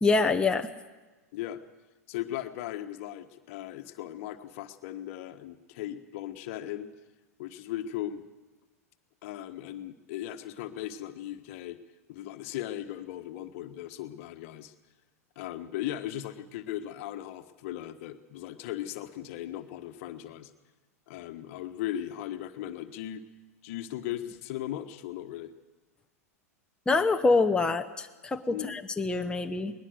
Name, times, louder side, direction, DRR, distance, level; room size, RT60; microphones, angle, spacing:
voice 1, 0.0-0.7 26.9-29.7, left 3 dB, 10° left, 5 dB, 1.0 m, -25 dB
voice 2, 2.1-6.9 7.4-8.2 9.2-11.8 12.1-14.7 15.3-20.5 21.1-23.2 23.6-25.5 28.5-28.8, left 12 dB, 55° left, 8 dB, 1.4 m, -37 dB
22.5 x 20.0 x 6.6 m, 1.2 s
figure-of-eight pair, 95°, 9 cm